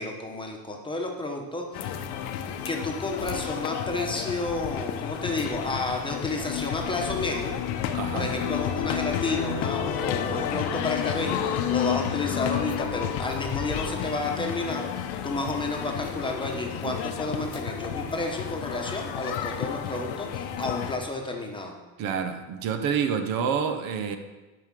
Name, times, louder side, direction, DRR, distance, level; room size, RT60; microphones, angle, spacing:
voice 1, 0.0-2.0 2.7-7.5 8.1-14.9 15.2-21.7, left 2 dB, 15° left, 1 dB, 1.0 m, -31 dB
sound 1, 1.7-21.0, left 9 dB, 85° left, 0.9 m, -31 dB
voice 2, 7.9-8.3 16.8-16.9 22.0-24.2, right 7 dB, 60° right, 8 dB, 1.0 m, -28 dB
9.7 x 5.1 x 7.4 m, 1.2 s
cardioid pair, 155°, 38 cm